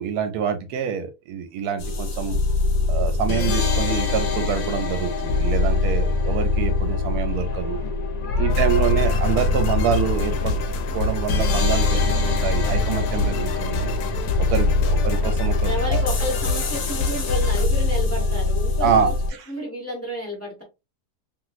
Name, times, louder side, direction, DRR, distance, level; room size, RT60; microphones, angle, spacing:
voice 1, 0.0-2.4 2.9-7.8 8.4-10.6 10.9-13.9 14.4-16.0 18.8-19.5, right 8 dB, 80° right, 1.1 m, -26 dB
sound 1, 1.8-19.3, left 3 dB, 70° left, 1.2 m, -23 dB
voice 2, 8.3-9.1 14.5-15.2 15.6-19.1 19.5-20.6, left 1 dB, 10° left, 0.9 m, -32 dB
sound 2, 8.5-17.7, left 3 dB, 90° left, 1.2 m, -29 dB
3.0 x 2.9 x 2.4 m
omnidirectional pair, 1.7 m